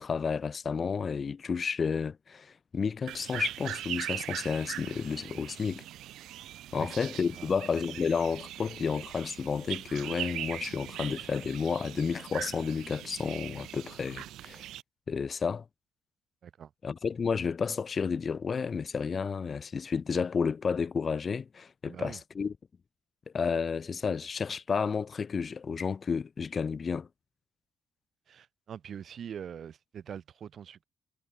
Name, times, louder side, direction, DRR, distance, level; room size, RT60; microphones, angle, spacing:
voice 1, 0.0-5.8 6.7-14.6 15.1-15.7 16.8-22.5 23.3-27.1, left 5 dB, 40° left, 5.2 m, -31 dB
sound 1, 3.1-14.8, right 13 dB, 85° right, 6.9 m, -41 dB
voice 2, 21.8-22.2 28.3-30.9, right 8 dB, 60° right, 7.9 m, -43 dB
cardioid pair, 90°, 0 cm